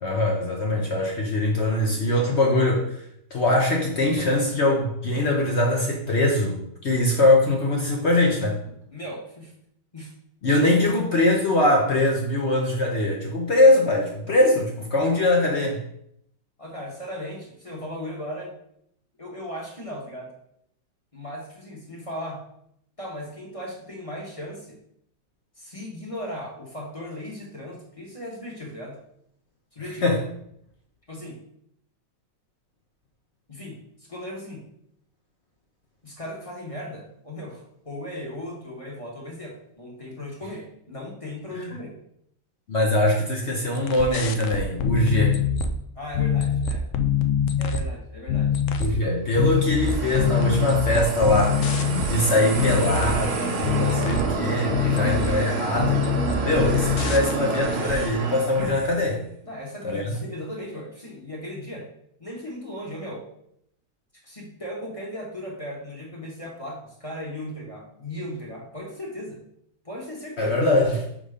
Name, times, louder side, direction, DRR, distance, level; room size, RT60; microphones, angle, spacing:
voice 1, 0.0-3.0 3.3-8.6 10.4-15.8 29.8-30.2 41.5-41.7 42.7-45.4 48.8-51.6 52.0-56.0 56.4-59.2 59.8-60.1 70.4-71.0, left 1 dB, 55° left, 0 dB, 0.8 m, -22 dB
voice 2, 8.9-9.5 9.9-10.1 10.4-10.8 16.6-18.5 19.2-20.3 21.1-22.4 23.0-24.8 25.6-29.0 29.7-30.1 31.1-31.4 33.5-34.6 36.0-42.0 45.9-46.8 47.6-48.5 48.8-49.0 54.7-55.1 59.4-61.9 62.2-63.3 64.2-69.4 69.8-70.6, left 1 dB, 20° left, -2 dB, 1.0 m, -37 dB
sound 1, 43.7-45.7 46.1-47.9 48.3-49.0 49.3-52.2 52.5-53.3 53.6-54.3 54.7-55.4 55.8-57.6 57.9-58.0, left 7 dB, 85° left, 0.6 m, -24 dB
sound 2, 49.4-59.1, right 3 dB, 55° right, 0.7 m, -29 dB
5.3 x 3.7 x 5.0 m, 0.73 s
omnidirectional pair, 1.9 m